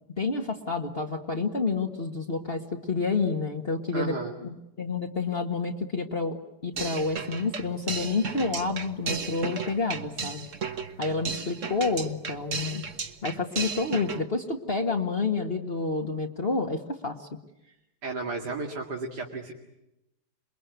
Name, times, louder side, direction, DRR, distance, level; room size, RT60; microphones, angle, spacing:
voice 1, 0.2-4.1 4.4-10.5 11.0-12.8 13.2-17.3, left 3 dB, 35° left, 1 dB, 1.9 m, -29 dB
voice 2, 3.9-4.3 18.0-19.5, right 3 dB, 85° right, 0 dB, 3.0 m, -33 dB
sound 1, 6.8-14.2, right 5 dB, 50° right, 1.7 m, -34 dB
28.0 x 22.5 x 9.5 m, 0.88 s
omnidirectional pair, 1.7 m